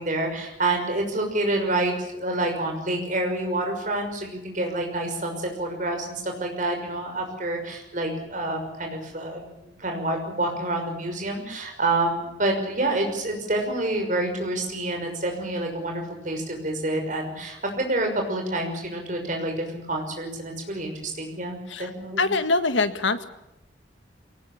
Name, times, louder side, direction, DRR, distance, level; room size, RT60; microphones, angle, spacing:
voice 1, 0.0-22.3, right 2 dB, 40° right, 3 dB, 6.0 m, -28 dB
voice 2, 22.2-23.2, left 3 dB, 80° left, 10 dB, 1.7 m, -23 dB
23.5 x 19.0 x 8.7 m, 0.89 s
head